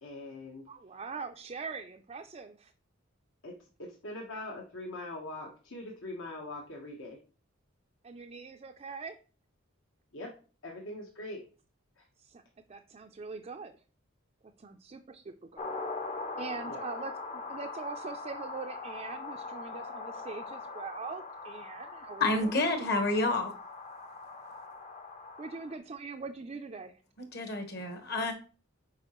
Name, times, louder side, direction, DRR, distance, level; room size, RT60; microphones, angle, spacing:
voice 1, 0.0-0.7 3.4-7.2 10.1-10.3 10.6-11.4 12.0-12.1 16.7-16.8, left 1 dB, 70° left, 1.1 m, -42 dB
voice 2, 0.7-2.7 8.0-9.2 12.2-12.4 12.7-13.7 14.6-15.6 16.4-22.5 25.4-27.0 27.8-27.9, right 4 dB, 30° right, 0.4 m, -42 dB
sound 1, 15.6-25.8, left 3 dB, 30° left, 0.6 m, -41 dB
voice 3, 22.2-23.5 27.3-28.3, left 2 dB, 50° left, 1.3 m, -29 dB
7.8 x 4.8 x 3.0 m
head